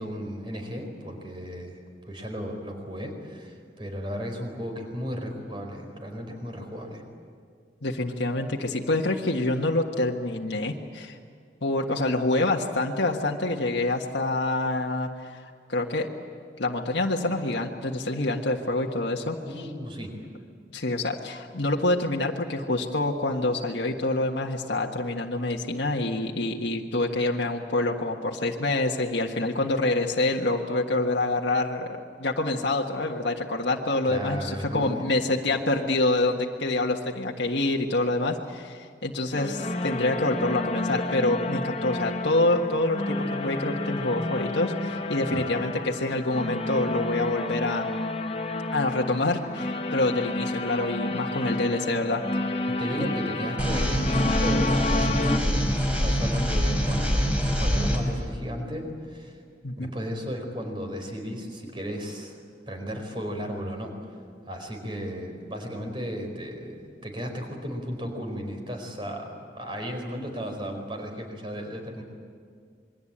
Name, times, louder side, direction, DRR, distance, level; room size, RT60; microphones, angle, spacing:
voice 1, 0.0-1.8 2.0-7.0 19.4-20.1 34.1-35.0 45.3-45.4 52.7-59.4 59.8-62.4 62.7-64.1 64.4-72.0, equal, 30° right, 4 dB, 4.4 m, -35 dB
voice 2, 7.8-11.2 11.6-16.1 16.6-19.7 20.7-47.9 48.7-52.2 59.6-59.9, left 2 dB, 80° left, 0 dB, 1.6 m, -26 dB
sound 1, 39.3-55.4, left 2 dB, 35° left, 1.2 m, -30 dB
sound 2, 53.6-58.0, equal, 5° right, 4.6 m, -24 dB
27.5 x 22.5 x 8.8 m, 2.1 s
head